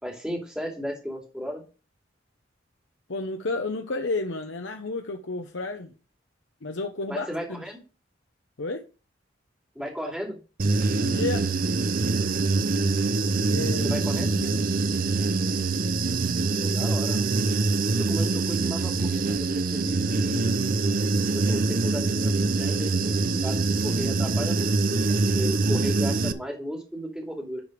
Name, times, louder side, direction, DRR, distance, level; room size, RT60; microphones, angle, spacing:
voice 1, 0.0-1.6 7.1-7.8 9.7-10.4 13.8-14.4 16.6-17.3 17.9-20.5 21.3-27.6, equal, 5° right, 2.8 m, -35 dB
voice 2, 3.1-5.9 6.6-7.6 8.6-8.8 11.0-11.5 13.5-14.0 14.3-14.6, left 3 dB, 80° left, 0.9 m, -31 dB
Human voice / Buzz, 10.6-26.3, right 3 dB, 50° right, 0.7 m, -24 dB
11.0 x 5.0 x 5.1 m
head